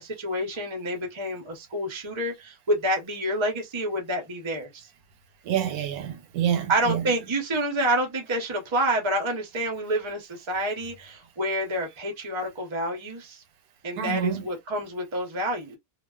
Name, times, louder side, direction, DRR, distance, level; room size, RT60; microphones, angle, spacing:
voice 1, 0.0-4.9 6.7-13.4 13.8-15.8, right 1 dB, 30° right, 0.6 m, -28 dB
voice 2, 5.4-7.1 14.0-14.5, right 9 dB, 90° right, 1.1 m, -27 dB
2.3 x 2.3 x 2.2 m
omnidirectional pair, 1.5 m